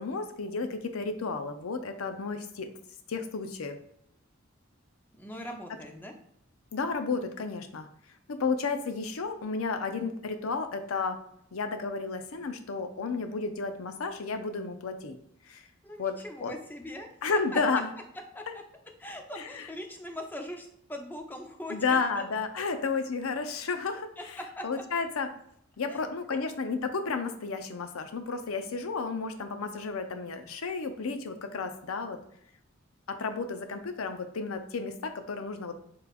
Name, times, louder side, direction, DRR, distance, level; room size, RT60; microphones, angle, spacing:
voice 1, 0.0-2.7 3.1-3.8 6.7-7.9 8.3-11.2 11.5-15.1 15.5-15.6 16.0-16.2 16.4-16.5 17.2-17.9 19.4-19.7 21.7-24.1 24.6-25.3 25.8-32.2 33.1-35.8, left 4 dB, 85° left, 8 dB, 0.6 m, -32 dB
voice 2, 5.1-6.1 15.8-17.6 18.3-18.6 19.0-22.2 24.2-24.6 25.9-26.4, left 1 dB, 10° left, 3 dB, 0.6 m, -41 dB
6.8 x 3.2 x 2.4 m, 0.73 s
head